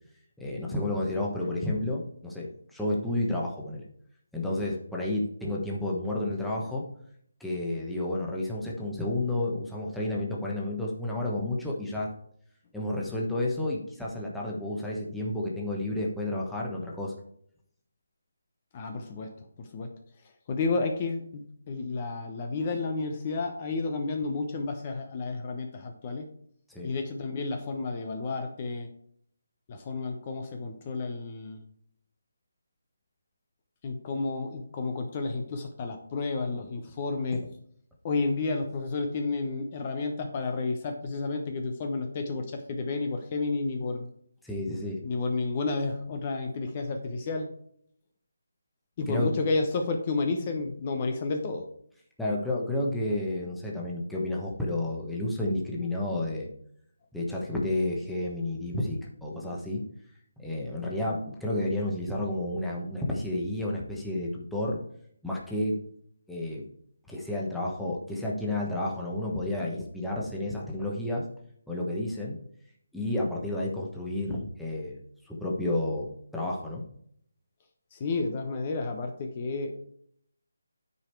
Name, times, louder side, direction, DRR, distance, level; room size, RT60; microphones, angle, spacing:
voice 1, 0.4-3.8 4.3-6.8 7.4-12.1 12.7-17.1 26.7-26.9 44.4-45.0 49.1-49.3 52.2-56.5 57.1-59.9 60.4-64.8 65.2-65.8 66.3-66.6 67.1-71.2 71.7-72.4 72.9-75.0 75.2-76.1 76.3-76.8, left 1 dB, ahead, -4 dB, 1.2 m, -31 dB
voice 2, 18.7-19.3 19.6-19.9 20.5-26.3 26.8-28.9 29.7-31.6 33.8-37.4 38.0-44.1 45.0-47.5 49.0-51.7 77.9-79.8, left 3 dB, 30° left, 4 dB, 0.9 m, -31 dB
9.7 x 5.0 x 4.6 m, 0.67 s
figure-of-eight pair, 160°, 0 cm